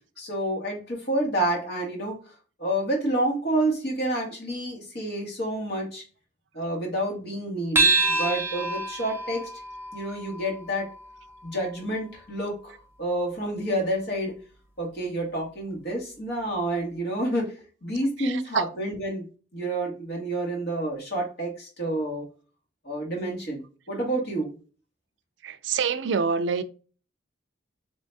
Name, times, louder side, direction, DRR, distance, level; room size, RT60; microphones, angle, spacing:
voice 1, 0.2-2.2 2.6-6.0 6.5-9.5 9.9-10.9 11.4-14.3 14.8-19.3 19.5-22.2 22.8-23.6 23.9-24.5, right 1 dB, 60° left, 1.8 m, -29 dB
sound 1, 7.8-12.5, right 3 dB, 15° right, 0.6 m, -28 dB
voice 2, 18.2-18.6 25.4-26.6, right 5 dB, 65° right, 0.4 m, -26 dB
3.4 x 3.2 x 2.7 m
head